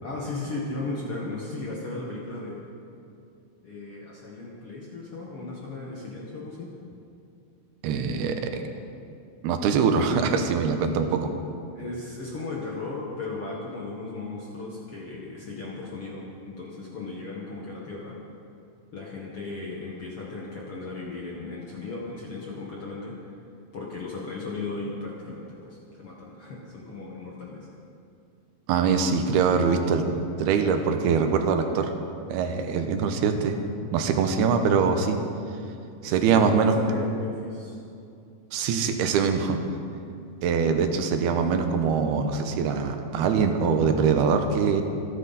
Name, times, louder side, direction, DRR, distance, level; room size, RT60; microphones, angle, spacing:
voice 1, 0.0-2.7 3.6-6.7 11.7-18.2 18.9-23.1 23.7-27.7 36.0-37.8, left 3 dB, 55° left, -4 dB, 1.7 m, -36 dB
voice 2, 7.8-8.6 9.4-11.3 28.7-30.1 30.4-31.9 32.3-33.6 33.9-35.2 36.0-36.7 38.5-39.6 40.4-44.8, right 6 dB, 80° right, 6 dB, 2.9 m, -23 dB
26.5 x 9.8 x 4.1 m, 2.5 s
omnidirectional pair, 4.6 m